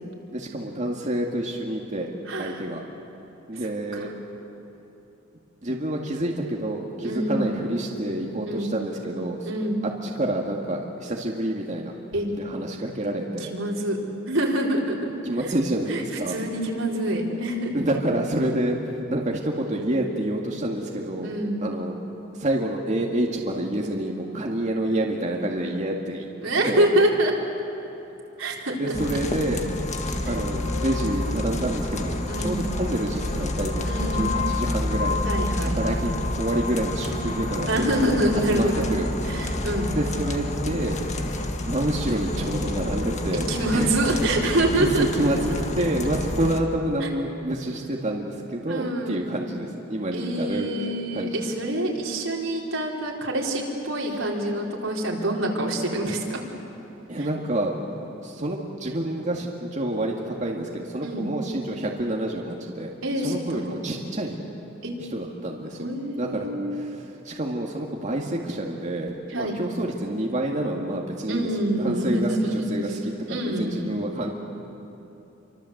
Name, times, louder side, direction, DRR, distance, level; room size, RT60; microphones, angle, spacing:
voice 1, 0.3-2.1 2.4-3.1 3.5-4.1 5.6-9.5 10.0-11.9 12.4-13.5 15.2-16.4 17.7-21.3 21.6-22.0 22.3-26.3 26.5-26.9 28.7-29.6 30.3-35.3 35.6-38.0 38.5-39.1 39.5-39.7 39.9-41.0 41.6-43.9 44.8-45.5 45.7-50.8 51.1-51.4 54.1-54.2 57.1-57.8 58.2-64.4 65.1-65.9 66.2-71.5 71.8-74.3, right 1 dB, 35° right, -1 dB, 2.0 m, -28 dB
voice 2, 2.3-2.6 3.9-4.0 7.0-7.4 8.5-8.7 9.4-9.8 12.1-12.3 13.4-14.0 14.3-15.1 15.9-17.8 21.2-21.7 26.4-27.3 28.4-29.0 32.3-32.6 33.8-34.3 35.2-36.1 37.7-38.9 39.2-39.9 43.5-45.1 47.0-47.1 48.7-49.3 50.1-56.4 57.2-57.3 61.0-61.3 63.0-63.6 64.8-64.9 65.8-66.8 69.3-69.6 71.3-72.7 73.3-74.0, right 1 dB, 80° right, -2 dB, 4.3 m, -26 dB
sound 1, 28.9-46.6, left 2 dB, 35° left, 1.7 m, -28 dB
28.5 x 24.5 x 8.0 m, 3.0 s
head